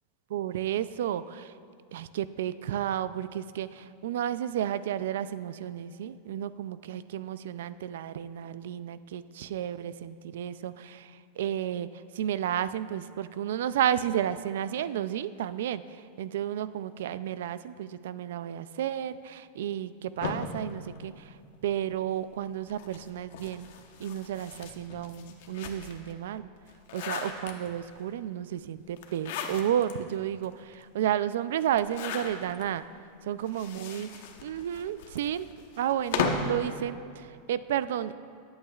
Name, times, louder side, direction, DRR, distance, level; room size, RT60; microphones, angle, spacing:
voice 1, 0.3-1.5 1.9-11.9 12.1-15.8 16.2-21.4 21.6-23.7 24.0-26.4 26.9-32.8 33.2-34.1 34.4-35.5 35.8-38.1, right 10 dB, 80° right, 14 dB, 0.4 m, -32 dB
sound 1, 20.2-21.8 22.7-26.1 26.6-28.0 29.0-29.9 30.4-30.5 30.7-30.8 31.7-32.7 33.4-36.6, left 5 dB, 65° left, 1.0 m, -36 dB
19.0 x 8.7 x 2.4 m, 2.3 s
supercardioid pair, 155°, 0 cm